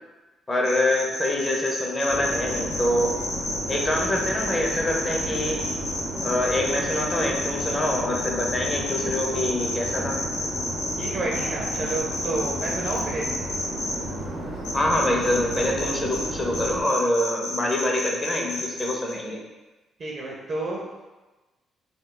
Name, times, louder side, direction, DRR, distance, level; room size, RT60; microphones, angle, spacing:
voice 1, 0.5-3.1 3.7-5.6 6.2-10.2 14.7-19.4, left 1 dB, 25° left, -1 dB, 0.6 m, -25 dB
sound 1, 0.6-13.9 14.6-16.3 16.5-19.1, left 2 dB, 70° left, 0.6 m, -31 dB
sound 2, 2.1-16.8, right 1 dB, 90° right, 0.8 m, -33 dB
voice 2, 11.0-13.2 20.0-20.8, right 2 dB, 50° right, -3 dB, 0.5 m, -30 dB
2.3 x 2.3 x 3.7 m, 1.1 s
cardioid pair, 90°, 0 cm